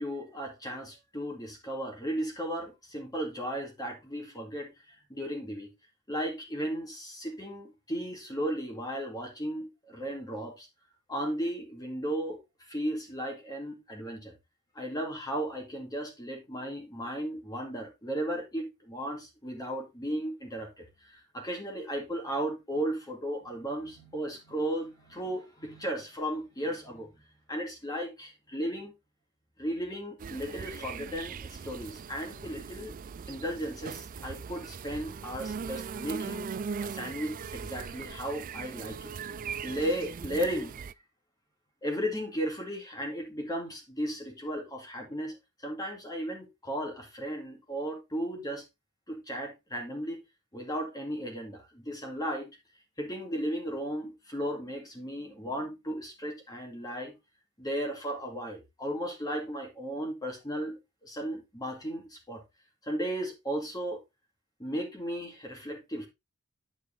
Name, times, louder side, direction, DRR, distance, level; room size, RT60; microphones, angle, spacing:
voice 1, 0.0-5.7 6.1-10.7 11.1-14.3 14.7-28.9 29.6-32.9 33.3-36.5 36.8-39.1 39.6-40.8 41.8-45.3 45.6-48.6 49.1-50.2 50.5-52.5 53.0-57.1 57.6-62.4 62.8-64.0 64.6-66.1, equal, 15° left, 2.4 m, -35 dB
sound 1, 30.2-40.9, right 6 dB, 40° right, 0.3 m, -40 dB
9.6 x 4.9 x 3.9 m
head